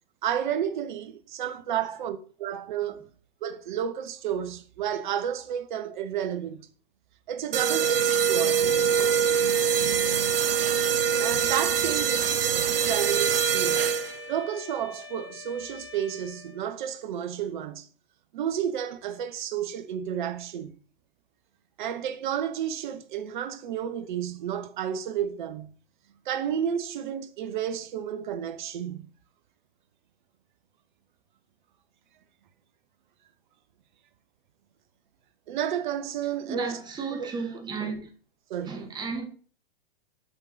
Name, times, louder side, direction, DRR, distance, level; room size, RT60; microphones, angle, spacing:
voice 1, 0.2-3.0 3.4-6.7 7.3-8.7 11.2-13.9 14.3-17.9 18.3-20.7 21.8-25.7 26.2-29.1 35.5-36.8 37.1-37.3 38.5-38.8, right 9 dB, 55° right, 1.0 m, -31 dB
sound 1, 7.5-14.3, right 7 dB, 75° right, 0.7 m, -24 dB
Wind instrument woodwind instrument, 12.7-16.9, left 4 dB, 15° left, 3.5 m, -45 dB
voice 2, 36.5-38.1 38.7-39.3, right 4 dB, 15° right, 1.3 m, -34 dB
7.1 x 6.6 x 2.9 m
figure-of-eight pair, 110°, 29 cm